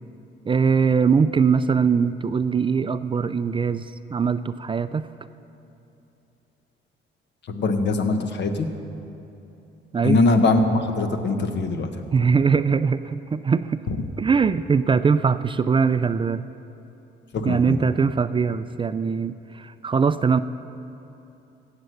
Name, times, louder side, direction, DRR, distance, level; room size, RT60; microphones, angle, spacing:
voice 1, 0.5-5.1 9.9-10.2 12.1-13.8 14.2-16.4 17.5-20.4, right 5 dB, 25° right, 12 dB, 0.3 m, -21 dB
voice 2, 7.5-8.7 10.0-11.9 13.9-14.0 17.3-17.8, left 3 dB, 65° left, 6 dB, 1.2 m, -22 dB
15.5 x 8.2 x 6.6 m, 2.9 s
cardioid pair, 90°, 20 cm